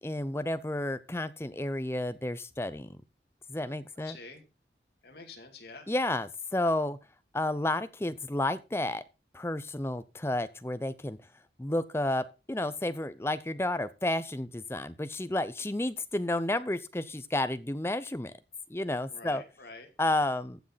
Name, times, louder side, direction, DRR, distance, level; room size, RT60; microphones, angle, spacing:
voice 1, 0.0-2.9 3.5-4.2 5.9-7.0 7.3-9.0 9.3-11.2 11.6-18.3 18.7-19.4 20.0-20.6, left 1 dB, 15° left, 12 dB, 0.6 m, -31 dB
voice 2, 4.0-4.4 5.0-5.9 19.1-19.9, left 3 dB, 65° left, 3 dB, 2.6 m, -47 dB
15.0 x 6.4 x 4.1 m, 0.29 s
head